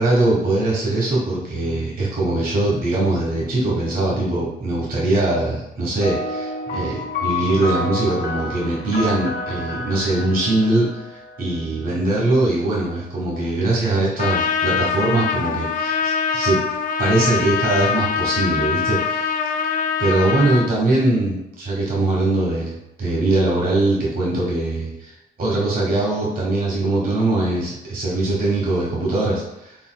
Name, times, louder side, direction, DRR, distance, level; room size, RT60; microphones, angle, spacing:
voice 1, 0.0-16.6 17.0-19.3 20.0-29.8, right 2 dB, 45° right, -5 dB, 1.1 m, -21 dB
sound 1, 6.0-11.8, left 2 dB, 60° left, 1.3 m, -29 dB
Trumpet, 14.2-20.7, left 6 dB, 45° left, 0.4 m, -23 dB
4.0 x 3.7 x 2.2 m, 0.89 s
cardioid pair, 90°, 20 cm